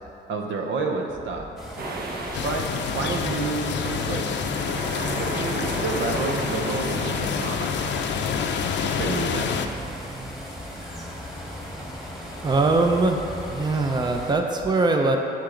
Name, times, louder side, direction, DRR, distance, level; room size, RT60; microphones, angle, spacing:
voice 1, 0.3-1.5 2.4-4.2 5.2-8.3 8.8-9.5, right 3 dB, 70° right, 2 dB, 0.9 m, -30 dB
sound 1, 1.6-14.3, equal, ahead, 1.6 m, -37 dB
sound 2, 1.8-7.7, right 2 dB, 50° right, 1.1 m, -34 dB
sound 3, 2.3-9.7, left 7 dB, 65° left, 0.6 m, -28 dB
voice 2, 12.4-13.2 13.5-15.2, right 3 dB, 20° right, 3 dB, 0.6 m, -21 dB
7.5 x 6.8 x 3.9 m, 2.7 s
cardioid pair, 90°, 20 cm